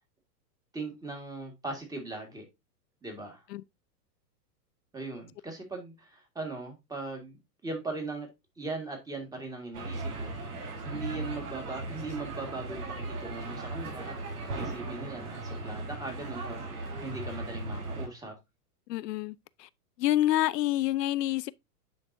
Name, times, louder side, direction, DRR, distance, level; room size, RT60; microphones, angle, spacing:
voice 1, 0.7-2.5 3.0-3.4 4.9-8.3 8.6-10.5 10.8-18.3, right 3 dB, 10° right, 1.8 m, -39 dB
sound 1, 9.7-18.1, right 2 dB, 70° right, 4.6 m, -37 dB
voice 2, 18.9-19.7 20.0-21.5, left 14 dB, 85° left, 0.6 m, -28 dB
10.0 x 3.9 x 2.6 m
hypercardioid pair, 140°, 47 cm